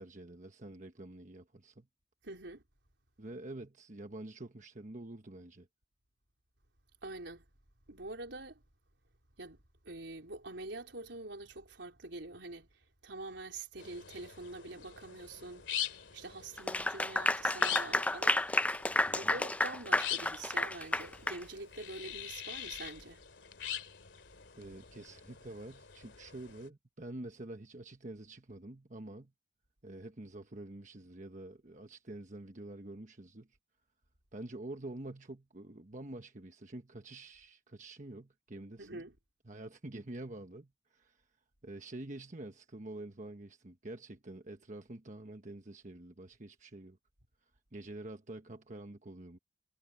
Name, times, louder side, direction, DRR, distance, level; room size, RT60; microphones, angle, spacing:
voice 1, 0.0-1.9 3.2-5.7 19.1-19.4 24.6-29.3 29.8-33.5 34.3-39.0 39.5-41.2 41.6-47.0 47.7-49.4, right 2 dB, 45° right, 1.2 m, -47 dB
voice 2, 2.2-2.6 7.0-7.5 7.9-8.6 9.4-12.7 13.0-18.4 19.1-23.2 38.8-39.2, right 2 dB, 80° right, 4.1 m, -45 dB
sound 1, 13.8-26.7, left 10 dB, 90° left, 2.5 m, -44 dB
Clapping / Applause, 16.6-21.4, left 2 dB, 10° left, 0.5 m, -31 dB
head